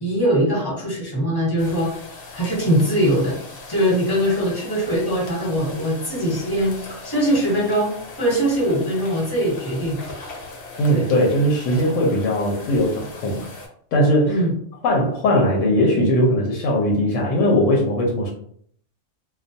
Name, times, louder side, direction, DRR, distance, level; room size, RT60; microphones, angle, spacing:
voice 1, 0.0-1.9 2.3-3.4 3.7-6.7 7.0-7.9 8.2-10.0 10.9-11.0 14.3-14.5, equal, 20° left, -4 dB, 0.9 m, -21 dB
sound 1, 1.6-13.7, left 3 dB, 55° left, 0.8 m, -39 dB
voice 2, 10.8-13.5 13.9-14.4 14.8-18.3, equal, 85° left, -1 dB, 1.0 m, -19 dB
2.3 x 2.2 x 2.6 m, 0.63 s
omnidirectional pair, 1.3 m